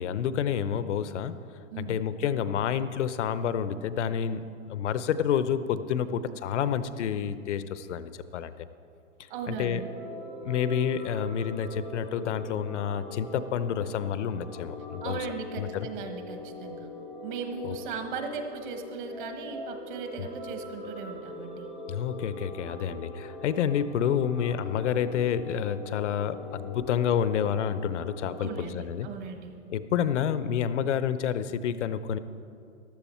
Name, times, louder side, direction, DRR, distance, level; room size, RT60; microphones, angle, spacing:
voice 1, 0.0-1.4 1.8-8.5 9.5-9.8 10.4-15.3 15.6-15.9 17.6-17.8 20.2-20.3 21.9-29.1 29.7-32.2, left 8 dB, 65° left, 13 dB, 0.8 m, -29 dB
sound 1, 9.3-28.6, left 2 dB, ahead, 0.5 m, -42 dB
voice 2, 9.3-9.9 15.0-16.9 17.2-21.7 28.4-29.5, right 5 dB, 40° right, 5 dB, 1.4 m, -37 dB
14.5 x 11.5 x 4.4 m, 2.5 s
hypercardioid pair, 155°, 39 cm